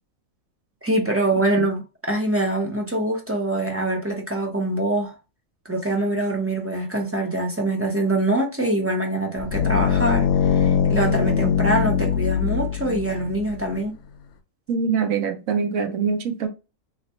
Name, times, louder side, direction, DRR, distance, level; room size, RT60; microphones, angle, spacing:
voice 1, 0.8-5.1 5.6-14.0, right 1 dB, 15° right, 0.5 m, -24 dB
sound 1, 9.4-13.7, left 7 dB, 65° left, 0.7 m, -22 dB
voice 2, 14.7-16.5, right 5 dB, 80° right, 1.1 m, -23 dB
3.2 x 2.9 x 2.8 m
omnidirectional pair, 1.4 m